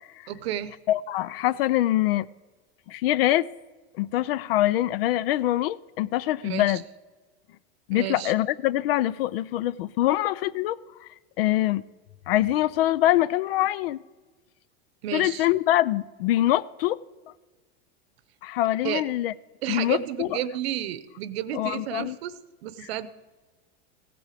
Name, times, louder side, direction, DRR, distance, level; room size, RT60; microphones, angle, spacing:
voice 1, 0.3-0.8 6.4-6.8 7.9-8.3 15.0-15.5 18.8-19.0 19.6-22.3 22.6-23.1, right 12 dB, 75° right, 15 dB, 0.8 m, -32 dB
voice 2, 0.9-2.3 2.9-3.4 4.0-6.8 7.9-11.1 11.4-11.8 12.3-14.0 15.1-17.0 18.4-19.3 19.7-20.4 21.5-22.2, left 14 dB, 65° left, 21 dB, 0.5 m, -24 dB
16.0 x 7.7 x 4.9 m, 1.3 s
supercardioid pair, 175°, 32 cm